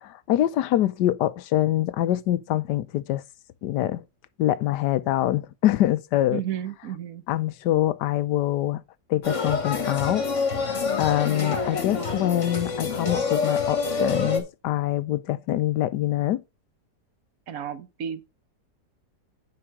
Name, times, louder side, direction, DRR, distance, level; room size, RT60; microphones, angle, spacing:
voice 1, 0.0-3.2 3.6-4.0 4.4-6.4 7.3-8.8 9.1-10.3 11.0-16.4, left 13 dB, 90° left, 1.3 m, -24 dB
voice 2, 6.3-7.2 17.5-18.2, right 9 dB, 60° right, 1.3 m, -32 dB
sound 1, 9.2-14.4, left 4 dB, 50° left, 2.0 m, -27 dB
8.7 x 5.7 x 4.8 m
omnidirectional pair, 1.7 m